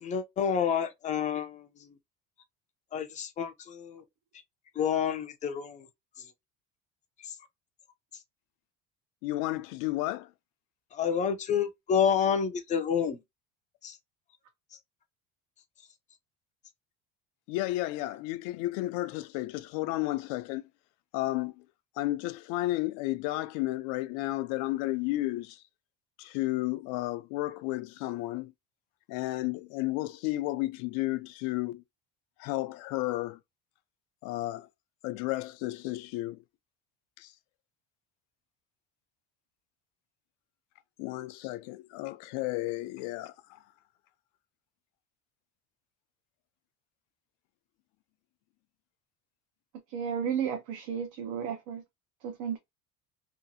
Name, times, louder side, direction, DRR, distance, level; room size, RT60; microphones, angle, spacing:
voice 1, 0.0-1.7 2.9-4.0 4.8-5.9 7.3-7.4 10.9-13.2 13.8-14.0, left 7 dB, 25° left, 0.4 m, -29 dB
voice 2, 9.2-10.3 17.5-20.6 21.1-21.6 22.0-25.6 26.2-28.5 29.1-31.8 32.4-33.4 34.2-34.7 35.0-36.4 37.2-37.3 41.0-43.6, left 17 dB, 80° left, 0.5 m, -32 dB
voice 3, 49.9-51.8 52.2-52.6, right 7 dB, 80° right, 0.7 m, -33 dB
2.9 x 2.4 x 2.6 m
cardioid pair, 165°, 32 cm